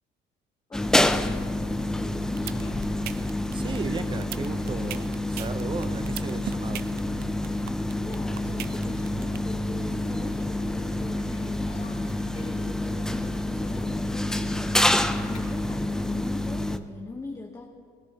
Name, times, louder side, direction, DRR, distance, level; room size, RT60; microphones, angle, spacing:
voice 1, 0.7-2.5 8.0-14.8 15.3-17.7, left 3 dB, 20° left, 0 dB, 1.1 m, -40 dB
sound 1, 0.7-16.8, left 1 dB, 5° left, 0.5 m, -28 dB
sound 2, 2.2-15.4, left 3 dB, 50° left, 3.8 m, -47 dB
sound 3, 2.4-9.4, right 14 dB, 70° right, 0.4 m, -37 dB
voice 2, 3.5-6.9, right 4 dB, 30° right, 11 dB, 0.8 m, -35 dB
21.5 x 14.0 x 2.9 m, 2.3 s
cardioid pair, 110°, 17 cm